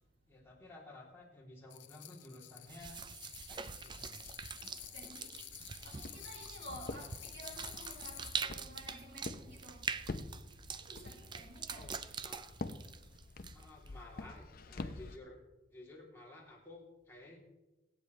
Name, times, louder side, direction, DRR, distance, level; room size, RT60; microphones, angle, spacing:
voice 1, 0.3-3.0 3.5-4.2 11.7-12.0 12.2-12.5 13.5-15.4 15.7-17.4, left 2 dB, 15° left, -4 dB, 3.1 m, -54 dB
sound 1, 1.7-8.5, left 15 dB, 85° left, 0.7 m, -51 dB
sound 2, 2.7-13.9, right 5 dB, 25° right, 0.4 m, -44 dB
voice 2, 4.9-5.3 5.7-9.8 10.8-11.9, equal, 85° right, -3 dB, 4.6 m, -52 dB
Walk footsteps, 5.8-15.2, left 2 dB, 55° left, 0.7 m, -47 dB
23.5 x 8.9 x 3.3 m, 1.0 s
head